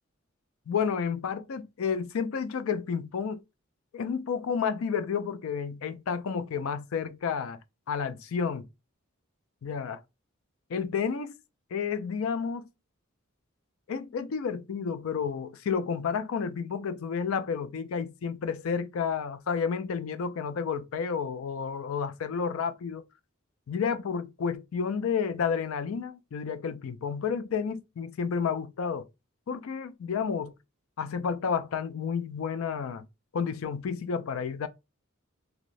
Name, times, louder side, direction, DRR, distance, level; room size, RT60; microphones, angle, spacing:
voice 1, 0.7-3.4 3.9-7.6 7.9-8.6 9.6-10.0 10.7-11.3 11.7-12.7 13.9-23.0 23.7-29.1 29.5-30.5 31.0-33.0 33.3-34.7, left 6 dB, 75° left, 0.4 m, -31 dB
3.1 x 2.9 x 2.6 m
head